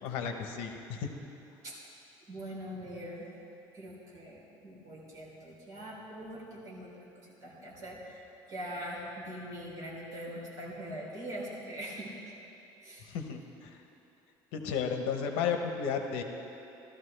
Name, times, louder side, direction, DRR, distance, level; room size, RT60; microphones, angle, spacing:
voice 1, 0.0-1.1 13.1-13.4 14.5-16.2, left 6 dB, 80° left, 5 dB, 0.9 m, -33 dB
voice 2, 2.3-3.3 3.7-6.9 7.1-12.1 12.8-13.1, equal, 40° right, -5 dB, 3.2 m, -42 dB
15.0 x 13.0 x 3.3 m, 2.9 s
cardioid pair, 175°, 9 cm